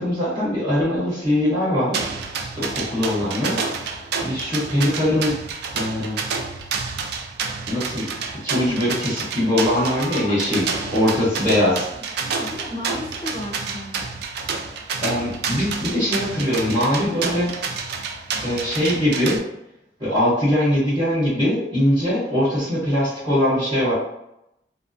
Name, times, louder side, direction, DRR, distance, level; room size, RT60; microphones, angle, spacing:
voice 1, 0.0-2.0 2.4-3.6 4.2-5.4 5.7-6.2 7.7-11.9 15.0-17.8 18.4-19.4 20.0-23.9, left 1 dB, 25° right, -10 dB, 0.9 m, -22 dB
sound 1, 1.9-19.4, right 5 dB, 60° right, 0.3 m, -29 dB
voice 2, 9.8-10.9 11.2-11.5 12.2-14.1, left 1 dB, 25° left, -2 dB, 0.4 m, -34 dB
2.4 x 2.2 x 2.5 m, 0.84 s
head